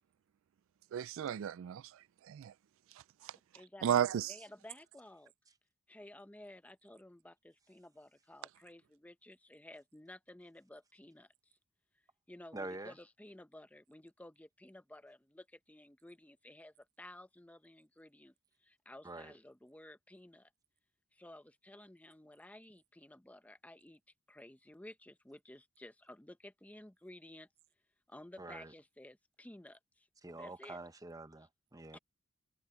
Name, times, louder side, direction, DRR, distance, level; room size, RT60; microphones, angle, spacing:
voice 1, 0.9-2.5 2.9-3.4 3.8-4.4, right 9 dB, 65° right, 0.3 m, -35 dB
voice 2, 3.5-3.9 4.3-5.3 5.9-11.6 12.3-18.3 18.6-20.5 21.1-24.0 24.3-27.5 28.1-30.1 30.3-30.8 31.9-32.0, left 1 dB, 5° left, 0.7 m, -54 dB
voice 3, 12.5-12.9 19.0-19.3 28.4-28.7 30.2-32.0, right 2 dB, 15° right, 0.9 m, -46 dB
head